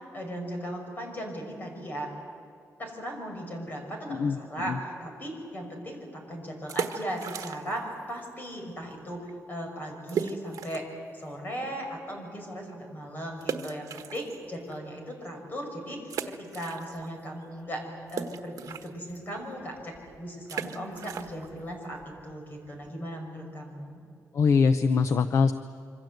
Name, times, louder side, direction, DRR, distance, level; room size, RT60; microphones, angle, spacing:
voice 1, 0.1-2.1 2.8-10.9 11.1-24.0, equal, 30° left, 3 dB, 6.0 m, -37 dB
voice 2, 4.1-4.8 24.3-25.5, left 5 dB, 50° left, 10 dB, 0.7 m, -23 dB
sound 1, 6.6-7.9 8.2-8.3 8.9-9.0 9.3-9.4 10.1-11.0 11.5-11.6 13.4-14.7 15.2-15.3 16.1-17.3 17.5-23.0, right 7 dB, 70° right, 1.4 m, -37 dB
26.5 x 25.0 x 7.9 m, 2.4 s
wide cardioid pair, 175°, 6 cm